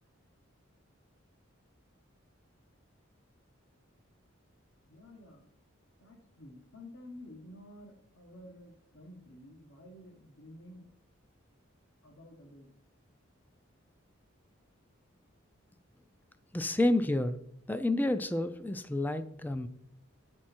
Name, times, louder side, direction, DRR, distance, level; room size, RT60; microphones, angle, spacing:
voice 1, 4.9-5.4 6.0-10.9 12.0-12.7, left 1 dB, 70° left, 4 dB, 1.5 m, -51 dB
voice 2, 16.5-17.4 17.7-19.7, left 1 dB, 10° left, 11 dB, 0.4 m, -29 dB
9.2 x 6.2 x 4.4 m, 0.72 s
head